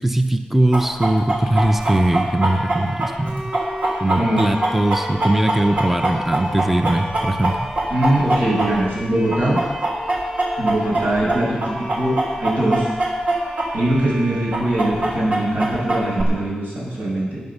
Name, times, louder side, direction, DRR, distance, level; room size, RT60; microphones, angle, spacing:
voice 1, 0.0-3.6 4.0-7.7, right 1 dB, 10° right, 7 dB, 0.6 m, -20 dB
Chicken rooster, 0.7-9.0 9.3-13.7 13.9-14.0 14.5-16.2, right 2 dB, 65° right, 3.1 m, -22 dB
Bowed string instrument, 1.4-15.4, right 1 dB, 30° right, 4.9 m, -37 dB
voice 2, 7.9-9.6 10.6-12.9 13.7-17.4, right 1 dB, 85° right, -4 dB, 5.7 m, -21 dB
11.5 x 9.7 x 6.7 m, 1.2 s
wide cardioid pair, 130°, 3 cm